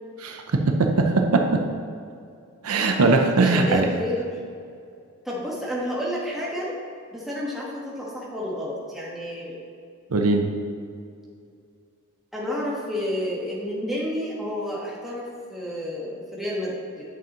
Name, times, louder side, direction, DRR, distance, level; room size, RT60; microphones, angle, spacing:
voice 1, 0.2-1.6 2.6-3.9 10.1-10.4, right 3 dB, 80° right, 3 dB, 0.7 m, -20 dB
voice 2, 3.4-4.3 5.2-6.6 7.1-9.6 12.3-16.7, left 1 dB, ahead, -6 dB, 1.3 m, -30 dB
10.0 x 5.8 x 3.0 m, 2.3 s
head